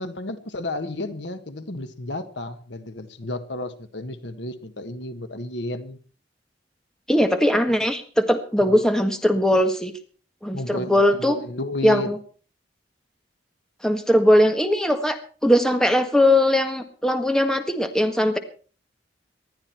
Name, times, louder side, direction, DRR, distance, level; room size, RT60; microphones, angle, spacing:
voice 1, 0.0-6.0 8.7-8.8 10.5-12.1, left 2 dB, 75° left, 10 dB, 1.5 m, -32 dB
voice 2, 7.1-9.9 10.4-11.4 11.8-12.2 13.8-18.4, left 1 dB, 5° left, 6 dB, 1.6 m, -20 dB
20.0 x 13.0 x 4.5 m, 0.40 s
head